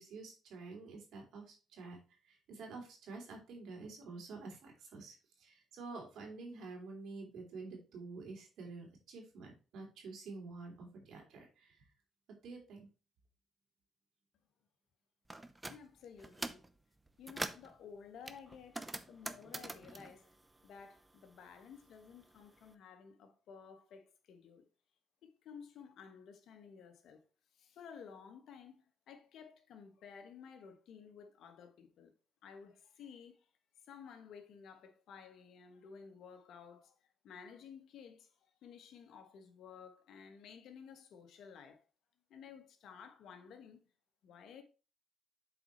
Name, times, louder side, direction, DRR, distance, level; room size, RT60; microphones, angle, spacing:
voice 1, 0.0-11.8 12.4-12.9, right 3 dB, 80° right, 3.0 m, -49 dB
sound 1, 15.3-15.8 16.2-16.7 17.1-17.7 18.3-21.2 21.5-22.6, right 2 dB, 15° right, 0.8 m, -44 dB
voice 2, 15.7-16.7 17.2-20.3 20.6-24.7 25.2-27.2 27.5-32.1 32.4-33.5 33.9-37.0 37.2-38.3 38.6-41.9 42.3-43.8 44.2-44.6, left 6 dB, 75° left, 1.3 m, -54 dB
7.8 x 4.4 x 4.5 m
cardioid pair, 90°, 0 cm